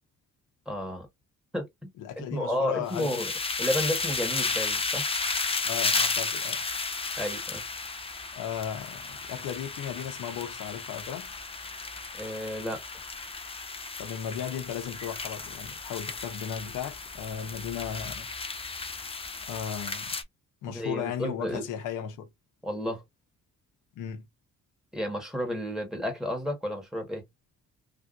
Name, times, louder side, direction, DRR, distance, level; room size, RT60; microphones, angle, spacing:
voice 1, 0.7-1.1 1.5-1.9 2.3-3.3 3.6-5.1 7.2-7.6 12.2-12.8 20.7-21.7 22.6-23.0 24.9-27.2, left 1 dB, ahead, 1.7 m, -32 dB
voice 2, 2.0-3.1 5.6-6.6 8.3-11.3 14.0-18.3 19.5-20.2 20.6-22.3 24.0-24.3, left 9 dB, 90° left, 0.9 m, -36 dB
sound 1, 2.9-20.2, left 4 dB, 20° left, 0.6 m, -33 dB
3.4 x 2.5 x 2.5 m
cardioid pair, 90°, 30 cm